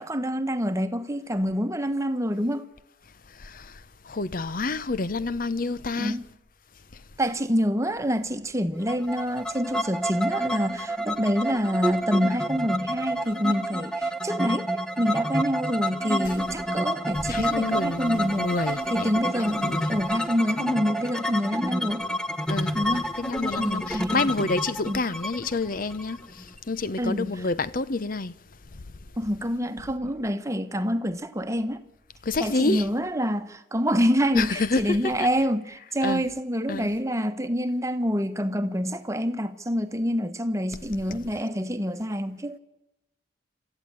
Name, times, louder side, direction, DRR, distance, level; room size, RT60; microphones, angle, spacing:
voice 1, 0.0-2.7 6.0-6.2 7.2-14.7 15.0-18.5 18.9-22.0 22.7-23.1 23.6-24.5 24.9-25.0 27.0-27.5 29.2-31.8 32.4-42.6, equal, 15° right, 1.2 m, -27 dB
voice 2, 3.4-3.7 4.1-6.1 17.3-18.8 19.6-19.9 22.5-28.3 28.7-28.9 32.2-32.8 34.3-35.0 36.0-36.2 36.7-36.9, left 3 dB, 50° left, 0.8 m, -28 dB
sound 1, 8.9-26.6, equal, 5° left, 0.9 m, -29 dB
28.5 x 14.0 x 8.9 m
head